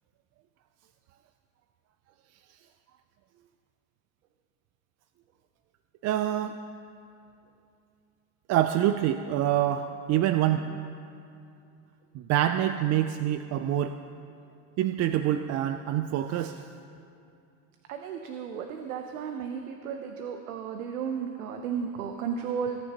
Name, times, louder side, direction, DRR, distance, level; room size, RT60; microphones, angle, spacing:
voice 1, 6.0-6.5 8.5-10.8 12.1-14.0 14.8-16.6, right 11 dB, 40° right, 9 dB, 0.4 m, -26 dB
voice 2, 17.9-22.8, right 7 dB, 90° right, 5 dB, 0.9 m, -34 dB
21.0 x 9.5 x 2.9 m, 2.5 s
supercardioid pair, 105°, 42 cm